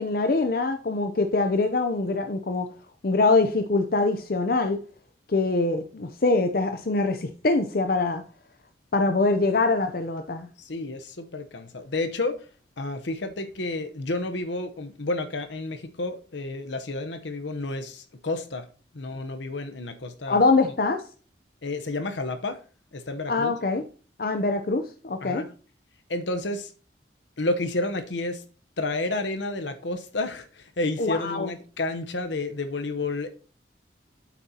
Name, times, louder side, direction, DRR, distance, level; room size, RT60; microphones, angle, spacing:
voice 1, 0.0-2.7 3.0-4.8 5.3-8.2 8.9-10.5 20.3-21.0 23.3-23.8 24.2-25.4 31.0-31.5, left 3 dB, 50° left, 0.6 m, -24 dB
voice 2, 10.6-12.4 12.8-18.6 18.9-20.4 21.6-22.6 22.9-23.5 25.2-25.5 26.1-26.7 27.4-28.4 28.8-33.3, left 2 dB, 80° left, 0.9 m, -30 dB
8.4 x 8.2 x 2.9 m
head